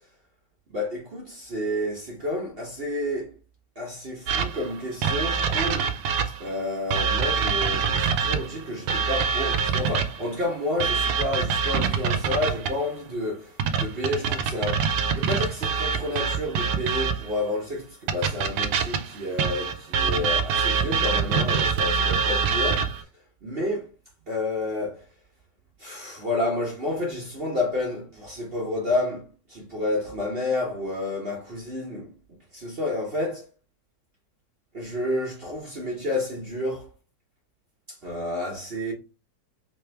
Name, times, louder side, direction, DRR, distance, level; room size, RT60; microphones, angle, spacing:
voice 1, 0.7-3.4 3.8-5.9 6.4-23.1 23.4-23.9 24.3-25.0 25.8-33.5 34.7-36.9 37.9-38.9, left 2 dB, 45° right, 0.9 m, -30 dB
sound 1, 4.3-6.5 6.9-10.3 10.8-12.9 13.6-17.4 18.1-23.0, right 6 dB, 80° right, 1.2 m, -25 dB
3.3 x 3.3 x 3.2 m
omnidirectional pair, 1.8 m